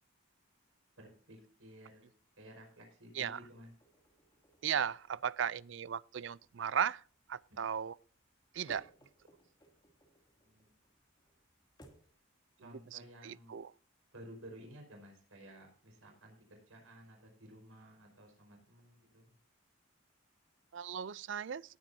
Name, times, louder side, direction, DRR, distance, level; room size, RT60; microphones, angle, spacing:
voice 1, 1.0-3.7 10.4-10.7 12.6-13.6 14.1-19.4, equal, 80° right, 4.8 m, -55 dB
sound 1, 3.4-12.2, right 1 dB, 20° left, 2.6 m, -65 dB
voice 2, 4.6-7.0 7.3-7.9 8.5-8.9 12.9-13.7 20.7-21.6, right 8 dB, 60° right, 0.4 m, -36 dB
18.5 x 9.1 x 2.7 m
head